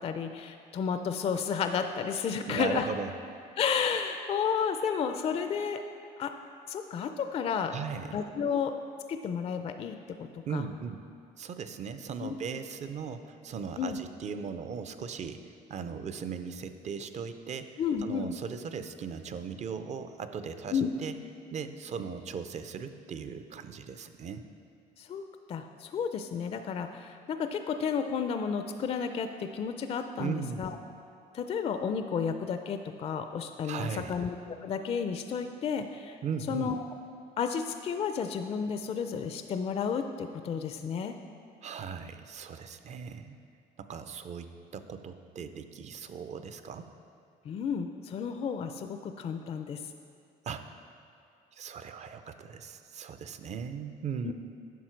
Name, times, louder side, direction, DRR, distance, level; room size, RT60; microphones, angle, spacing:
voice 1, 0.0-2.9 3.6-5.8 6.2-6.3 6.7-7.7 8.1-8.7 9.1-10.7 12.2-12.4 13.8-14.0 17.8-18.3 20.7-20.9 25.0-30.8 31.3-34.4 34.6-36.2 36.5-36.8 37.4-41.2 47.5-49.8 54.2-54.3, left 6 dB, 35° left, 7 dB, 0.4 m, -32 dB
voice 2, 2.5-3.1 7.7-8.1 10.5-11.0 11.4-15.4 15.7-21.1 21.5-24.4 30.2-30.8 33.6-34.1 36.2-36.7 41.6-43.4 43.8-46.9 50.5-50.7 51.5-54.3, right 6 dB, 45° right, 10 dB, 0.5 m, -38 dB
9.3 x 5.7 x 4.5 m, 2.4 s
cardioid pair, 110°, 17 cm